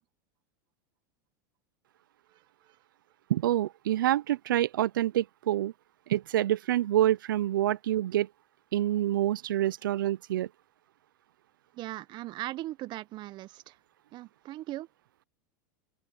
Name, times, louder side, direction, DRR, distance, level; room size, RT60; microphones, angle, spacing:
voice 1, 3.3-5.7 6.1-8.3 8.7-10.5, right 13 dB, 80° right, 0.6 m, -27 dB
voice 2, 11.7-13.8 14.1-14.9, right 16 dB, 45° right, 1.0 m, -39 dB
open air
hypercardioid pair, 100°, 11 cm